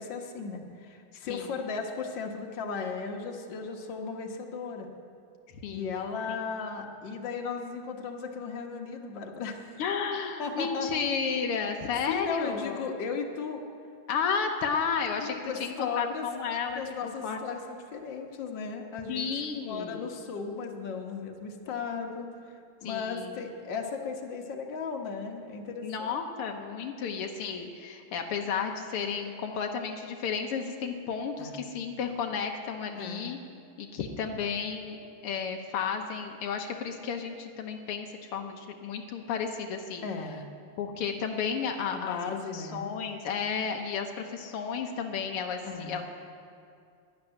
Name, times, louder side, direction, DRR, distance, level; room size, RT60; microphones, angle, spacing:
voice 1, 0.0-4.9 5.7-9.6 10.4-11.1 12.1-13.6 15.2-16.3 16.8-17.6 17.9-22.5 22.8-26.2 31.4-31.6 33.0-33.3 40.0-40.5 41.9-42.9 45.6-46.0, left 5 dB, 60° left, 2 dB, 1.9 m, -36 dB
voice 2, 5.5-6.0 6.3-6.4 9.8-12.9 14.1-16.8 17.2-17.4 19.1-20.1 22.8-23.4 25.8-33.4 33.8-35.0 35.2-40.1 40.8-42.2 42.5-46.0, left 6 dB, 85° left, 3 dB, 1.9 m, -32 dB
12.0 x 11.0 x 9.9 m, 2.4 s
omnidirectional pair, 2.4 m